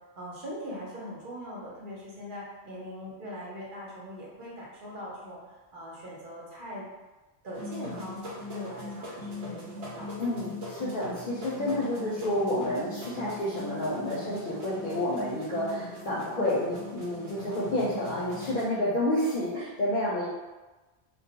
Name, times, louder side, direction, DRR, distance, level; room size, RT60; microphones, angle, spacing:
voice 1, 0.2-5.4 5.7-6.8 7.4-8.2 8.5-10.1, equal, 55° right, -6 dB, 0.8 m, -41 dB
sound 1, 7.5-18.6, left 2 dB, 85° right, 1.0 m, -40 dB
voice 2, 10.2-20.3, left 1 dB, 55° left, -8 dB, 0.6 m, -29 dB
2.3 x 2.1 x 2.8 m, 1.2 s
omnidirectional pair, 1.1 m